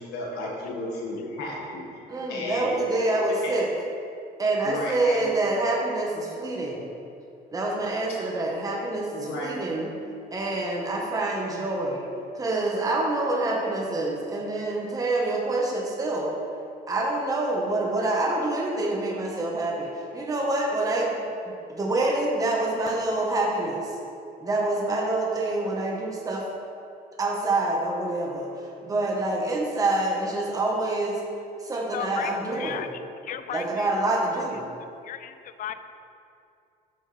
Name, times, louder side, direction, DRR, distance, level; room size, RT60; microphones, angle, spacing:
voice 1, 0.0-1.8 2.3-2.7 3.4-3.5 4.6-5.3 9.2-9.5, left 1 dB, 90° left, -3 dB, 1.7 m, -33 dB
voice 2, 2.1-3.7 4.4-6.9 7.5-9.9 10.3-12.0 12.3-16.3 16.9-21.2 21.4-23.9 24.4-26.4 27.2-31.2 31.6-32.8 33.5-34.7, right 2 dB, 20° right, -2 dB, 1.2 m, -26 dB
voice 3, 31.9-32.9 33.2-33.9 35.0-35.7, left 10 dB, 55° left, 11 dB, 0.5 m, -35 dB
9.8 x 6.3 x 3.3 m, 2.5 s
cardioid pair, 110°, 17 cm